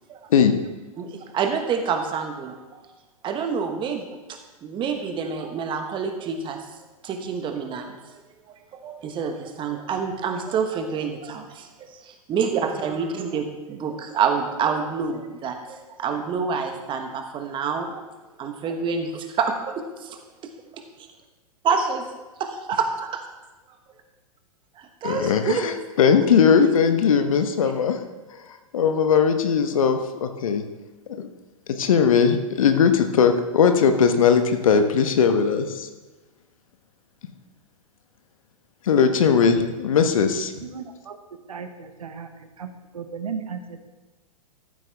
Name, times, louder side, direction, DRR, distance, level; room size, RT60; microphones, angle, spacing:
voice 1, 1.0-2.6 3.2-6.6 7.0-8.2 8.8-11.4 12.3-18.0 18.4-20.2 20.7-21.1 21.6-22.0 22.4-23.2 24.8-25.6, right 6 dB, 25° right, 5 dB, 1.3 m, -27 dB
voice 2, 25.0-28.0 28.7-30.6 31.2-31.3 31.7-35.9 38.8-40.5, left 6 dB, 65° left, 8 dB, 1.1 m, -19 dB
voice 3, 40.6-41.2 41.5-43.9, right 6 dB, 75° right, 8 dB, 1.0 m, -36 dB
14.0 x 7.7 x 3.4 m, 1.2 s
figure-of-eight pair, 105°, 18 cm